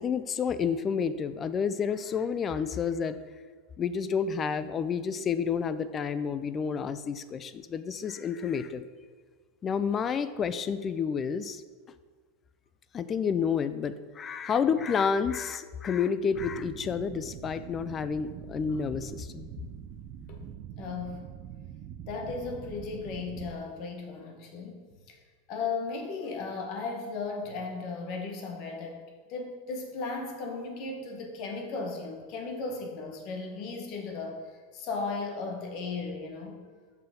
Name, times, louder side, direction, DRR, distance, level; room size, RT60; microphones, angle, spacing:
voice 1, 0.0-3.2 3.8-8.8 9.6-11.6 12.9-19.5, left 6 dB, 25° left, 13 dB, 0.3 m, -30 dB
sound 1, 16.3-23.6, right 9 dB, 45° right, 0.4 m, -44 dB
voice 2, 20.8-21.2 22.1-24.8 25.1-25.2 25.5-29.0 29.3-34.4 34.7-36.6, left 4 dB, 50° left, 2 dB, 1.3 m, -36 dB
5.8 x 5.6 x 5.1 m, 1.5 s
supercardioid pair, 135°, 0 cm